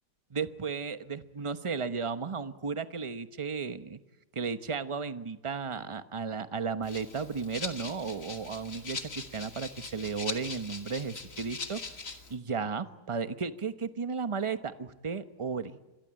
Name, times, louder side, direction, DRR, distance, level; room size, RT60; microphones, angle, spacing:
voice 1, 0.3-4.0 4.3-15.8, right 5 dB, 25° right, 11 dB, 0.9 m, -34 dB
Rattle (instrument), 6.8-12.4, left 4 dB, 55° left, 2.7 m, -41 dB
27.0 x 22.0 x 8.9 m, 1.1 s
omnidirectional pair, 1.7 m